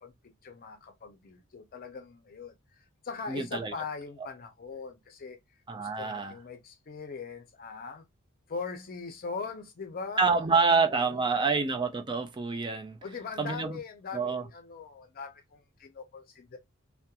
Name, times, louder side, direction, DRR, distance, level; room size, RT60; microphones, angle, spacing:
voice 1, 0.0-5.4 5.8-8.0 8.5-11.5 13.0-16.6, left 5 dB, 45° left, 0.5 m, -41 dB
voice 2, 3.3-3.7 5.7-6.3 10.2-13.0 13.4-13.7 14.1-14.4, right 4 dB, 20° right, 0.3 m, -27 dB
2.8 x 2.2 x 2.2 m
head